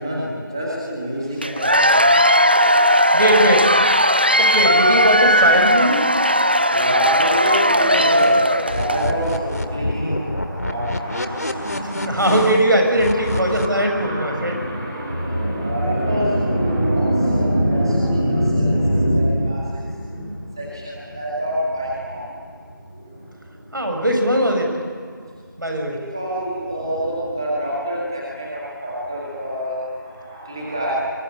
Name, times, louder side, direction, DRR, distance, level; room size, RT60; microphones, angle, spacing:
voice 1, 0.0-2.2 6.6-12.4 12.9-22.6 22.9-23.8 25.3-25.4 25.7-31.0, equal, 10° right, -6 dB, 2.0 m, -25 dB
Cheering / Applause / Crowd, 1.4-9.1, equal, 25° right, 0.6 m, -16 dB
voice 2, 3.1-3.7 4.4-6.1 11.8-14.6 23.7-24.7 25.6-26.0, right 1 dB, 65° right, 3 dB, 6.7 m, -19 dB
sound 1, 8.2-13.7, left 1 dB, 50° left, 2.0 m, -27 dB
23.5 x 22.5 x 8.9 m, 2.2 s
figure-of-eight pair, 180°, 12 cm